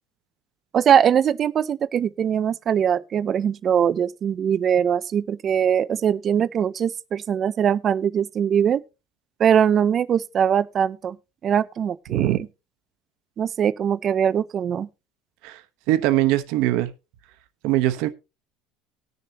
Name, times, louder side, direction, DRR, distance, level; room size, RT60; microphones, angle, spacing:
voice 1, 0.7-8.8 9.4-11.2 11.4-12.3 13.4-14.9, right 8 dB, 30° right, 0.5 m, -21 dB
voice 2, 15.9-16.9 17.6-18.1, right 15 dB, 65° right, 1.0 m, -21 dB
20.0 x 6.8 x 2.9 m
cardioid pair, 165°, 0 cm